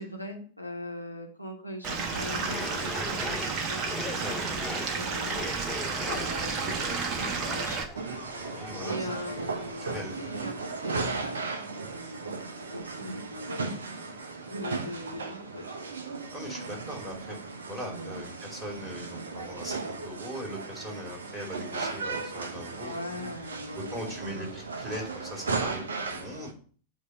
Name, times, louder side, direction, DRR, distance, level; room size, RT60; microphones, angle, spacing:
voice 1, 0.0-3.8 4.1-5.5 6.0-8.2 8.8-15.9 18.0-18.3 22.8-24.1, left 1 dB, 90° left, 0 dB, 1.0 m, -41 dB
Stream / Liquid, 1.8-7.8, right 4 dB, 35° right, 1.0 m, -31 dB
sound 1, 2.3-10.1, left 5 dB, 20° left, 0.7 m, -41 dB
sound 2, 7.9-26.5, right 4 dB, 65° right, 0.8 m, -36 dB
voice 2, 8.6-9.0 9.8-10.2 16.3-17.4 17.6-22.9 23.8-25.8 26.1-26.5, equal, 10° right, -2 dB, 2.7 m, -39 dB
8.1 x 2.8 x 5.3 m, 0.43 s
figure-of-eight pair, 90°, 0 cm